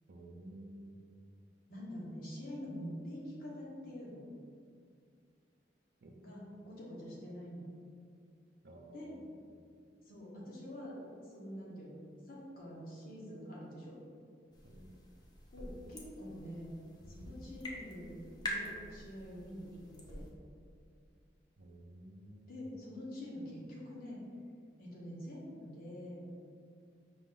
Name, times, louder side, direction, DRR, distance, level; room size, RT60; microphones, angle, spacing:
voice 1, 0.1-0.9 6.0-6.1 8.6-9.1 14.7-14.9 21.6-22.6, right 1 dB, 55° right, 1 dB, 0.5 m, -52 dB
voice 2, 1.7-4.2 6.2-7.6 8.9-9.2 10.0-12.0 12.2-13.9 15.5-16.7 17.1-20.2 22.5-24.2 24.8-26.2, equal, 50° left, -5 dB, 1.1 m, -46 dB
sound 1, 14.5-20.3, left 1 dB, 20° left, 0.5 m, -46 dB
5.0 x 2.5 x 3.6 m, 2.2 s
head